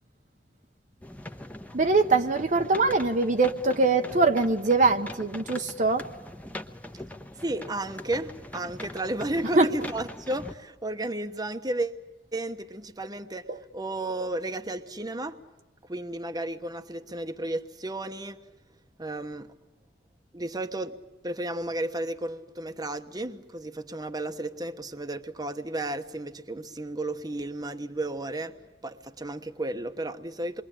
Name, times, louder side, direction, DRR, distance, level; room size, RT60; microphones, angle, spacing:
sound 1, 1.0-10.5, left 1 dB, 10° left, 1.1 m, -42 dB
voice 1, 1.7-6.0 9.6-9.7 13.5-13.6, right 3 dB, 45° right, 1.0 m, -23 dB
voice 2, 7.4-12.0 12.3-15.4 15.9-18.4 19.0-19.5 20.3-21.0 21.2-28.6 28.8-30.6, right 1 dB, 20° right, 1.1 m, -33 dB
28.0 x 22.5 x 8.9 m
head